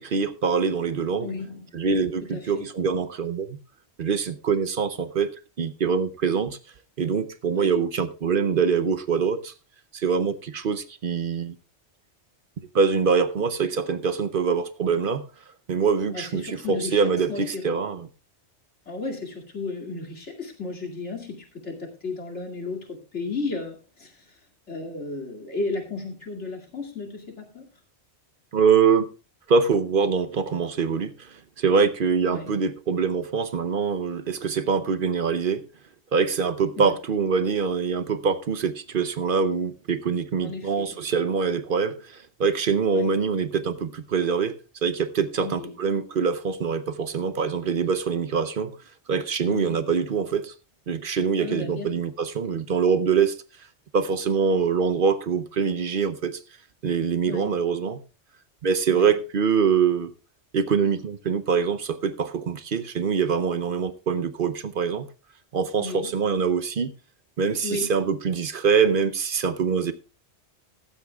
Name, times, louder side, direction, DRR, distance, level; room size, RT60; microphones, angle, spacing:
voice 1, 0.0-1.3 1.7-3.6 4.0-6.6 7.0-9.5 9.9-11.6 12.7-15.3 15.7-18.0 28.5-29.1 29.5-31.3 31.6-35.6 36.1-48.7 49.1-50.5 50.9-53.3 53.9-56.4 56.8-58.0 58.6-60.1 60.5-65.1 65.5-66.9 67.4-69.9, right 6 dB, 55° right, 0.9 m, -24 dB
voice 2, 1.2-1.8 2.3-2.7 7.5-7.7 16.1-17.0 17.3-17.6 18.9-24.4 24.7-27.6 32.3-32.5 36.8-36.9 40.4-41.0 42.9-43.1 45.4-45.7 49.4-49.8 51.4-52.1 57.3-57.6 58.9-59.1 65.8-66.1 67.6-67.9, left 3 dB, 85° left, 2.8 m, -34 dB
15.0 x 12.5 x 2.3 m
omnidirectional pair, 1.2 m